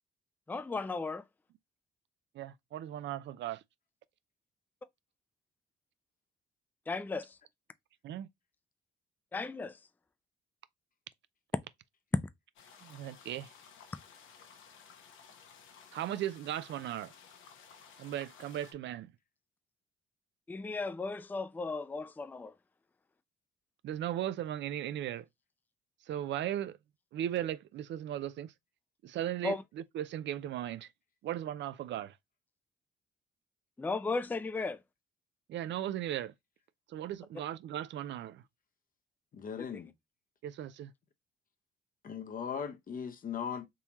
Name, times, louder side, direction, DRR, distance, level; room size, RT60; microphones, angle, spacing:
voice 1, 0.5-1.2 6.9-7.4 9.3-9.8 20.5-22.5 29.4-29.6 33.8-34.8, left 3 dB, 10° left, 0.4 m, -35 dB
voice 2, 2.3-3.6 8.0-8.3 12.8-13.5 15.9-17.1 18.0-19.1 23.8-25.2 26.1-26.8 27.1-28.5 29.0-29.6 29.9-30.9 31.2-32.2 35.5-36.3 36.9-38.4 40.4-40.9, right 11 dB, 65° right, 0.4 m, -37 dB
sound 1, 12.6-18.7, left 6 dB, 80° left, 0.9 m, -56 dB
voice 3, 39.3-39.9 42.0-43.7, left 7 dB, 45° left, 0.7 m, -38 dB
3.7 x 2.8 x 2.9 m
cardioid pair, 90°, 20 cm